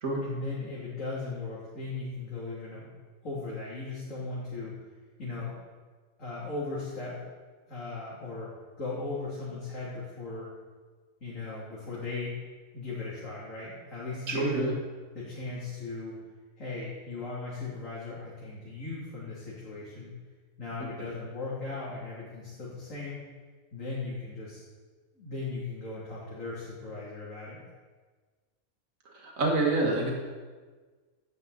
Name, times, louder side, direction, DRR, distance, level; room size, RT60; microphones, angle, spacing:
voice 1, 0.2-2.9 3.2-4.7 5.2-5.6 6.2-7.2 7.7-8.5 8.8-10.5 11.2-12.4 12.7-14.8 15.1-16.2 16.6-20.1 20.6-23.2 23.7-24.6 25.2-27.6, left 3 dB, 65° left, -8 dB, 3.4 m, -37 dB
voice 2, 14.3-14.7 29.1-30.1, right 2 dB, 70° right, -1 dB, 2.5 m, -27 dB
16.0 x 12.0 x 4.1 m, 1.4 s
omnidirectional pair, 1.5 m